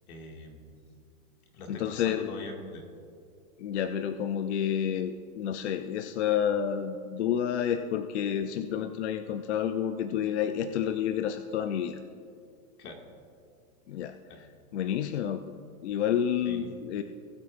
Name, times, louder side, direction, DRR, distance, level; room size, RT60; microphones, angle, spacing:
voice 1, 0.1-0.8 1.5-2.9 12.8-13.0 14.3-14.4 16.4-16.7, left 2 dB, 75° left, 1 dB, 2.1 m, -43 dB
voice 2, 1.7-2.3 3.6-12.0 13.9-14.2 14.7-15.5 15.8-17.0, left 9 dB, 50° left, 8 dB, 0.5 m, -29 dB
19.5 x 8.3 x 2.5 m, 2.3 s
supercardioid pair, 180°, 45 cm